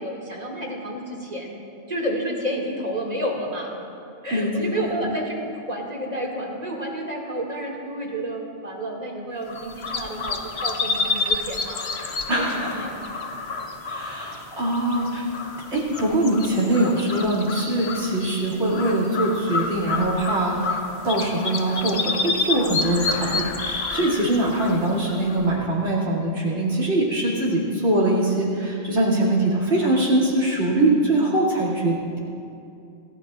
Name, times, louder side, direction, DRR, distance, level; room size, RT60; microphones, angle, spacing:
voice 1, 0.0-1.5 1.9-3.7 4.2-11.8 12.3-13.1, right 1 dB, 35° right, -2 dB, 2.5 m, -30 dB
voice 2, 4.3-4.8 12.3-12.8 13.9-15.3 15.7-20.6 21.0-32.2, right 1 dB, 75° right, -6 dB, 3.1 m, -22 dB
sound 1, 9.5-25.5, left 3 dB, 65° left, 1.3 m, -29 dB
26.5 x 16.5 x 2.5 m, 2.6 s
omnidirectional pair, 1.1 m